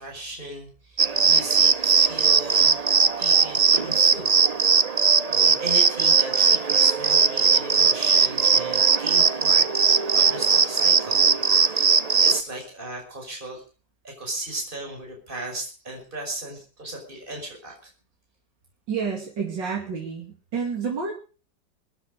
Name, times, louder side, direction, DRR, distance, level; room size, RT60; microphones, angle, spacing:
voice 1, 0.0-2.8 3.2-4.4 5.3-11.3 11.7-13.6 14.0-17.9, right 2 dB, 25° right, 0 dB, 5.8 m, -36 dB
sound 1, 1.0-12.4, right 5 dB, 75° right, 0.3 m, -19 dB
voice 2, 18.9-21.1, right 5 dB, 90° right, 0 dB, 3.3 m, -29 dB
22.5 x 10.5 x 5.1 m, 0.37 s
omnidirectional pair, 1.9 m